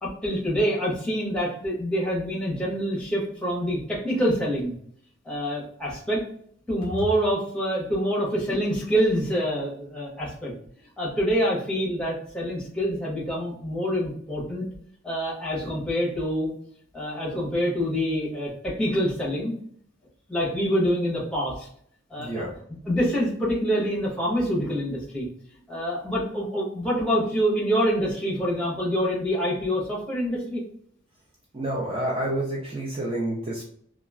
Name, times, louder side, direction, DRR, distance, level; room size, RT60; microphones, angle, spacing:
voice 1, 0.0-4.7 5.2-6.2 6.7-10.5 11.0-14.7 15.0-16.5 16.9-19.5 20.3-21.7 22.1-22.4 22.9-25.3 25.7-30.6, equal, 5° left, -5 dB, 0.9 m, -26 dB
voice 2, 22.2-22.5 31.5-33.7, right 1 dB, 25° right, -3 dB, 0.4 m, -29 dB
3.0 x 2.4 x 2.3 m, 0.63 s
head